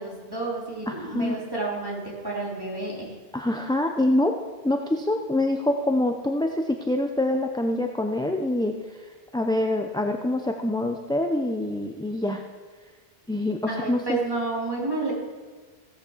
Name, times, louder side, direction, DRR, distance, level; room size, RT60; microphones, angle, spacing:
voice 1, 0.0-3.1 13.7-15.1, right 3 dB, 20° right, -5 dB, 3.3 m, -30 dB
voice 2, 0.9-1.4 3.3-4.4 4.6-8.8 9.3-12.4 13.3-14.2, left 1 dB, 5° left, 3 dB, 0.5 m, -25 dB
16.0 x 6.8 x 7.2 m, 1.4 s
omnidirectional pair, 1.1 m